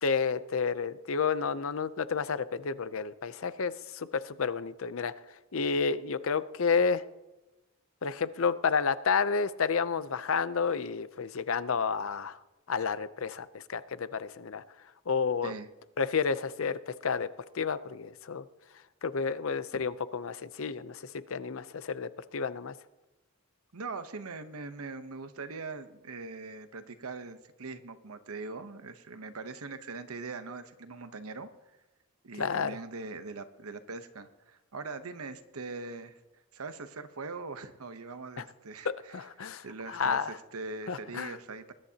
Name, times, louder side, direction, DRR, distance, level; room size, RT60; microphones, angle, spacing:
voice 1, 0.0-7.0 8.0-12.4 12.7-14.6 15.1-15.5 16.0-17.3 17.5-18.4 19.0-22.7 32.4-32.8 38.4-38.5 38.8-40.3 40.9-41.4, left 5 dB, 65° left, 14 dB, 0.6 m, -31 dB
voice 2, 23.7-31.5 32.2-36.2 36.5-41.7, right 3 dB, 80° right, 10 dB, 0.9 m, -41 dB
20.5 x 11.0 x 2.9 m, 1.0 s
head